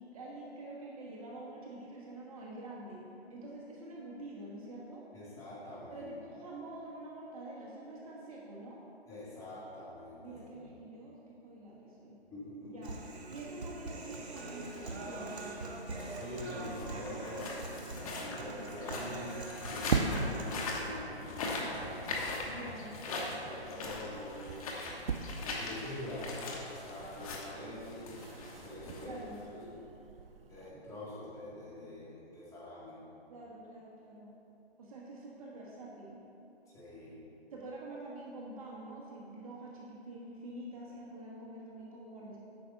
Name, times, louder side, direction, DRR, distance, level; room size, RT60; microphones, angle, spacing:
voice 1, 0.0-5.1 5.9-8.8 10.2-12.2 12.6-12.9 13.3-15.6 22.4-23.0 23.7-24.0 29.0-29.4 33.3-34.3 34.8-36.2 37.5-42.4, right 2 dB, 35° right, -4 dB, 1.3 m, -46 dB
voice 2, 5.1-6.1 9.1-10.7 12.3-12.9 16.1-17.6 18.0-19.4 19.6-22.3 23.1-24.6 25.4-28.3 28.6-29.2 29.5-29.8 30.5-33.0 36.7-37.2, left 1 dB, 10° left, -9 dB, 1.8 m, -44 dB
Human voice, 12.8-20.8, right 2 dB, 75° right, 1.3 m, -44 dB
sound 1, 13.9-29.6, left 2 dB, 35° left, 1.1 m, -42 dB
sound 2, 15.9-30.7, right 5 dB, 60° right, 0.6 m, -42 dB
8.5 x 5.8 x 5.3 m, 2.9 s
hypercardioid pair, 145°, 33 cm